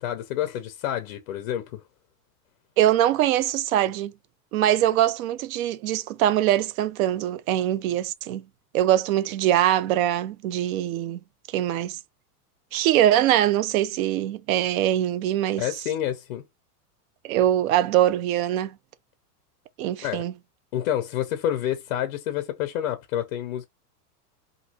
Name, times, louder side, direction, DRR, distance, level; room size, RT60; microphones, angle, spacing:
voice 1, 0.0-1.8 15.6-16.4 20.0-20.2 20.7-23.7, left 11 dB, 40° left, 0.4 m, -28 dB
voice 2, 2.8-4.1 4.5-8.4 8.7-12.0 12.7-15.7 17.2-18.8 19.8-20.3, right 12 dB, 60° right, 0.6 m, -23 dB
3.0 x 2.6 x 2.7 m
supercardioid pair, 155°, 47 cm